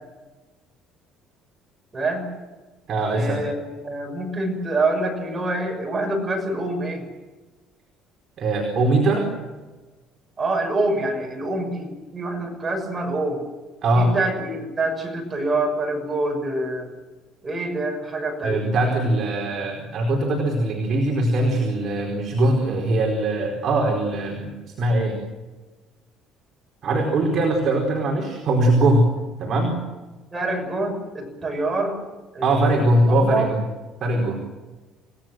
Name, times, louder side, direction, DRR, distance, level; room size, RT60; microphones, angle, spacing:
voice 1, 1.9-2.3 3.1-7.0 10.4-13.4 13.9-16.9 17.4-18.6 30.3-32.0 32.3-33.5, right 2 dB, 15° right, 2 dB, 6.5 m, -26 dB
voice 2, 2.9-3.4 8.4-9.3 13.8-14.1 18.4-24.5 24.8-25.2 26.8-29.1 29.4-29.8 32.4-33.6 34.0-34.4, right 1 dB, 40° right, 0 dB, 4.6 m, -21 dB
29.0 x 18.5 x 7.8 m, 1.2 s
cardioid pair, 160°, 0 cm